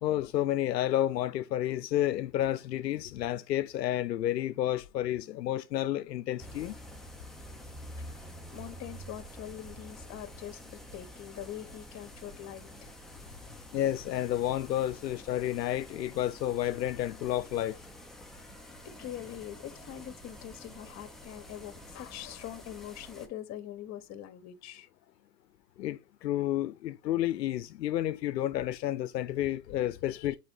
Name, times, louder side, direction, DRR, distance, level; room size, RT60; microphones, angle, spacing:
voice 1, 0.0-6.8 13.7-17.8 25.8-30.4, left 12 dB, 90° left, 0.6 m, -30 dB
sound 1, 6.4-23.3, equal, ahead, 0.3 m, -48 dB
voice 2, 8.5-12.9 13.3-13.6 18.6-24.9 30.0-30.4, left 11 dB, 35° left, 1.3 m, -44 dB
6.8 x 4.7 x 3.0 m
hypercardioid pair, 105°, 48 cm